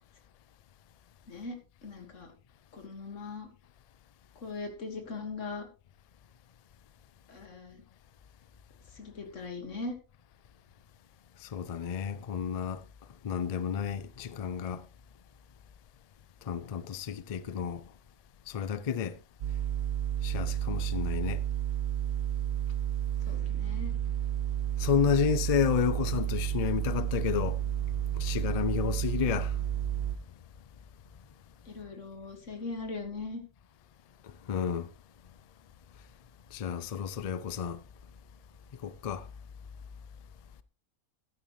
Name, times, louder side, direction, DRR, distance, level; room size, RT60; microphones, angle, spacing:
voice 1, 1.3-2.3 2.7-3.5 4.4-5.7 7.3-7.8 8.9-9.9 23.3-23.9 31.7-33.4, left 3 dB, 60° left, 2.2 m, -40 dB
voice 2, 11.4-12.8 13.2-14.9 16.4-17.8 18.5-19.2 20.2-21.4 24.8-27.7 28.1-29.6 34.2-34.9 36.5-37.8 38.8-39.3, left 7 dB, 80° left, 0.3 m, -31 dB
sound 1, 19.4-30.2, right 11 dB, 60° right, 0.7 m, -31 dB
12.5 x 9.7 x 3.1 m
omnidirectional pair, 1.4 m